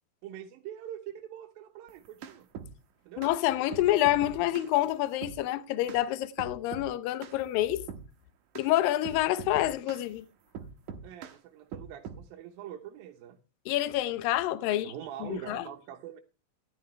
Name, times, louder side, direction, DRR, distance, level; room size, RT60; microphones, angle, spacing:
voice 1, 0.2-2.5 3.1-3.3 11.0-13.4 14.7-16.2, right 10 dB, 80° right, 2.8 m, -44 dB
sound 1, 1.9-2.7 3.2-3.4 3.7-4.7 5.2-5.4 5.9-6.0 6.4-6.9 7.2-7.4 7.9-8.1 8.5-8.7 9.0-10.1 10.5-11.4 11.7-12.2, right 6 dB, 65° right, 2.3 m, -42 dB
voice 2, 3.2-7.8 8.6-10.2 13.7-14.9 15.2-15.7, left 14 dB, 80° left, 2.5 m, -27 dB
14.0 x 12.0 x 3.2 m
omnidirectional pair, 4.1 m